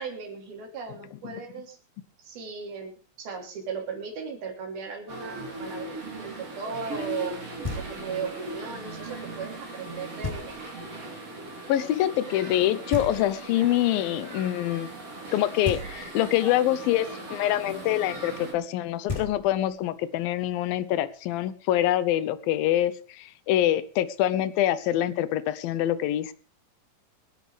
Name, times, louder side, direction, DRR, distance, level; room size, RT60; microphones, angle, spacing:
voice 1, 0.0-1.8 2.2-2.9 3.2-7.4 7.7-10.7, right 5 dB, 80° right, 3 dB, 5.1 m, -36 dB
sound 1, 5.1-18.5, right 2 dB, 40° right, 4.5 m, -39 dB
Knock, 7.6-8.3 10.2-10.9 12.9-13.7 15.6-16.4 18.7-18.8 19.1-19.9, left 3 dB, 10° left, 3.0 m, -35 dB
voice 2, 11.7-14.9 15.3-26.3, left 13 dB, 80° left, 15 dB, 2.6 m, -25 dB
25.0 x 10.5 x 3.4 m, 0.34 s
omnidirectional pair, 4.3 m